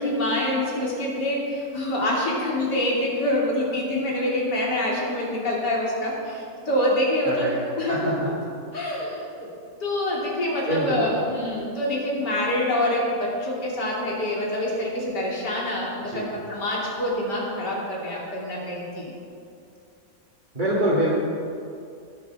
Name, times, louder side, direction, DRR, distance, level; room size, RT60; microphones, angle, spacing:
voice 1, 0.0-7.5 7.8-8.3 8.7-9.5 9.8-19.1, left 1 dB, 70° left, -4 dB, 3.7 m, -26 dB
voice 2, 7.3-8.2 10.7-11.1 16.0-16.3 20.5-21.1, right 1 dB, 25° right, -8 dB, 2.3 m, -25 dB
20.5 x 7.3 x 5.8 m, 2.5 s
omnidirectional pair, 1.9 m